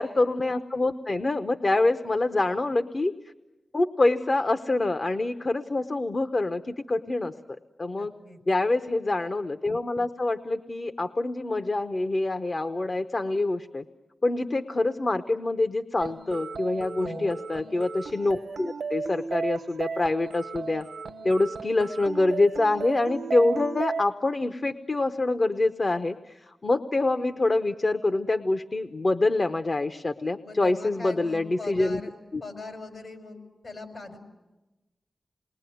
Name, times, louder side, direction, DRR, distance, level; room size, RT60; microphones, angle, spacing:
voice 1, 0.0-3.1 3.7-7.3 7.8-8.1 8.5-13.8 14.2-20.9 21.2-32.0, left 2 dB, 50° left, 9 dB, 0.9 m, -26 dB
voice 2, 7.9-8.4 16.9-17.4 30.4-32.1 32.4-33.4 33.6-34.2, left 2 dB, 70° left, 5 dB, 5.4 m, -40 dB
sound 1, 16.0-24.0, right 5 dB, 90° right, 0.9 m, -35 dB
28.0 x 21.0 x 9.3 m, 1.1 s
cardioid pair, 55°, 0 cm